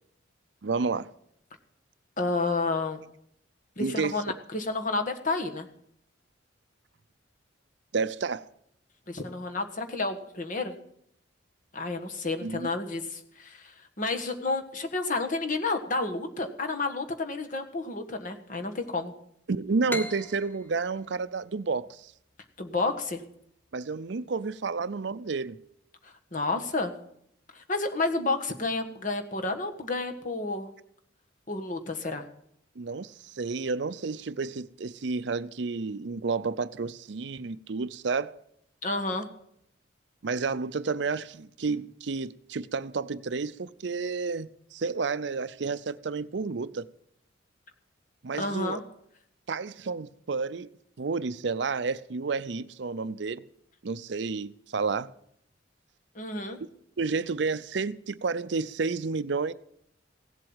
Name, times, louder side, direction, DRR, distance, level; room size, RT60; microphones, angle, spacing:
voice 1, 0.6-1.1 3.8-4.2 7.9-8.5 12.4-12.7 19.5-22.1 23.7-25.6 32.8-38.4 40.2-46.9 48.2-48.8 49.5-50.7 51.0-53.4 53.8-55.1 57.0-59.5, right 4 dB, 65° right, 0.5 m, -31 dB
voice 2, 2.2-3.0 3.8-5.7 9.1-10.7 11.7-19.1 22.6-23.2 26.0-26.9 27.5-30.7 31.5-32.2 38.8-39.3 48.4-48.8 56.1-56.6, left 3 dB, 40° left, 1.5 m, -30 dB
sound 1, 19.9-23.3, left 1 dB, 10° left, 0.7 m, -40 dB
16.5 x 7.8 x 8.9 m
head